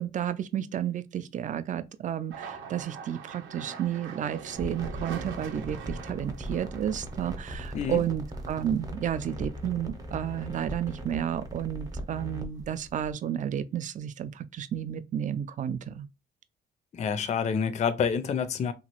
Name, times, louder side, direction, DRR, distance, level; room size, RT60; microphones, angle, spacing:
voice 1, 0.0-16.1, right 10 dB, 40° right, 0.4 m, -32 dB
sound 1, 2.3-11.0 11.4-12.2 12.5-13.4, right 6 dB, 80° right, 0.8 m, -45 dB
sound 2, 4.5-13.1, right 1 dB, 20° right, 0.8 m, -39 dB
voice 2, 16.9-18.7, left 6 dB, 35° left, 0.4 m, -28 dB
2.9 x 2.3 x 2.9 m
cardioid pair, 90°, 20 cm